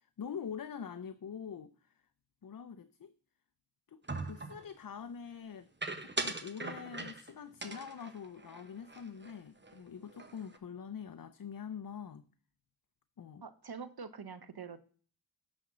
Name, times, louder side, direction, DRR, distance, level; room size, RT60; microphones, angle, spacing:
voice 1, 0.2-1.9 2.4-3.1 3.9-5.7 6.0-12.3 13.2-13.4, left 7 dB, 55° left, 0.6 m, -44 dB
sound 1, 4.1-4.7 5.8-7.3 7.6-9.3 9.6-9.8 10.1-10.6, right 3 dB, 25° right, 1.0 m, -40 dB
voice 2, 13.4-14.8, right 5 dB, 65° right, 0.9 m, -45 dB
9.9 x 4.3 x 6.0 m
wide cardioid pair, 45°, 41 cm